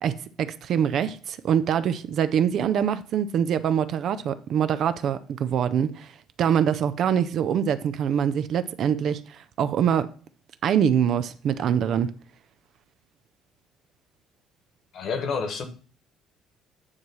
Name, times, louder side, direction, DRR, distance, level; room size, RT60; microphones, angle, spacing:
voice 1, 0.0-6.1 6.4-10.1 10.6-12.1, right 8 dB, 40° right, 0.5 m, -24 dB
voice 2, 14.9-15.6, left 5 dB, 40° left, 1.3 m, -28 dB
9.6 x 3.2 x 6.1 m
cardioid pair, 175°, 0 cm